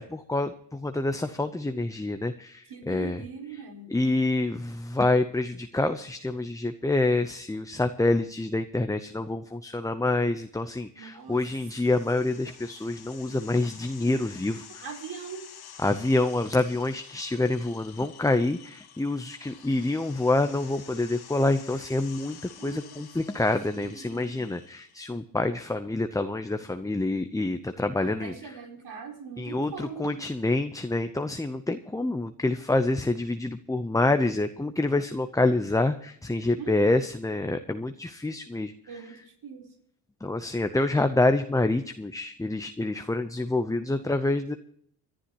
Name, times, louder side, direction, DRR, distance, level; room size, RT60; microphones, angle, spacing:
voice 1, 0.0-3.2 3.9-14.8 15.8-28.5 29.4-39.0 40.2-44.6, left 2 dB, 10° left, 8 dB, 0.7 m, -27 dB
voice 2, 2.7-3.9 10.9-11.4 12.2-12.4 14.8-15.6 22.6-23.1 23.7-24.6 28.0-30.3 36.6-36.8 38.9-39.7, right 6 dB, 70° right, 2 dB, 4.4 m, -41 dB
sound 1, 11.3-25.0, left 9 dB, 65° left, 1.7 m, -49 dB
26.0 x 11.5 x 3.0 m, 0.67 s
cardioid pair, 85°, 41 cm